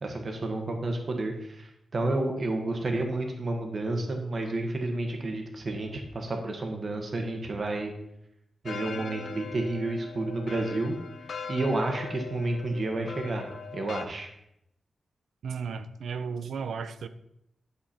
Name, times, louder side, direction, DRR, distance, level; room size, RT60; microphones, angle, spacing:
voice 1, 0.0-7.9 8.6-11.0 11.5-14.3, right 2 dB, 35° right, 3 dB, 1.5 m, -30 dB
sound 1, 8.7-14.1, left 5 dB, 55° left, 0.6 m, -40 dB
voice 2, 15.4-17.1, right 5 dB, 75° right, 12 dB, 0.6 m, -34 dB
10.0 x 7.2 x 4.3 m, 0.81 s
wide cardioid pair, 170°, 0 cm